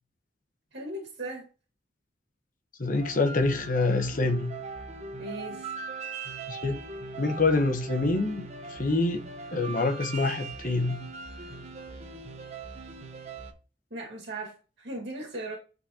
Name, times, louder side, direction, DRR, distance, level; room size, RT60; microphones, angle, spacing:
voice 1, 0.7-1.5 5.2-5.8 13.9-15.6, right 1 dB, 75° right, 1.9 m, -38 dB
voice 2, 2.8-4.5 6.5-6.8 7.2-9.2 9.5-11.1, left 3 dB, 50° left, 1.1 m, -26 dB
sound 1, 2.9-13.5, right 3 dB, 40° right, 1.1 m, -40 dB
8.7 x 4.1 x 2.8 m
head